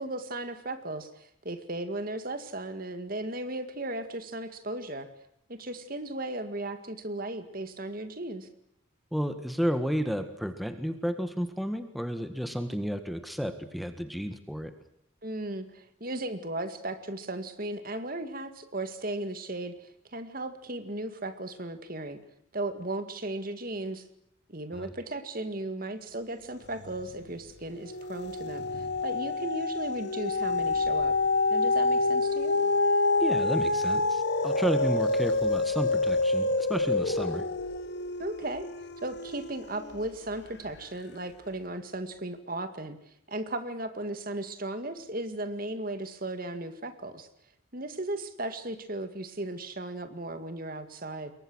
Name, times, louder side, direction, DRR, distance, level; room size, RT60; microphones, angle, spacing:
voice 1, 0.0-5.1 5.5-8.5 15.2-22.2 22.5-24.1 24.5-31.2 31.5-32.6 38.2-38.7 39.0-43.0 43.3-47.3 47.7-51.3, right 2 dB, 45° right, 10 dB, 2.1 m, -36 dB
voice 2, 9.1-14.7 24.7-24.9 33.2-37.4, equal, ahead, 8 dB, 1.7 m, -32 dB
sound 1, 26.8-27.3 27.7-40.2 40.7-40.8, left 3 dB, 55° left, 1.2 m, -27 dB
28.0 x 22.5 x 6.4 m, 0.74 s
head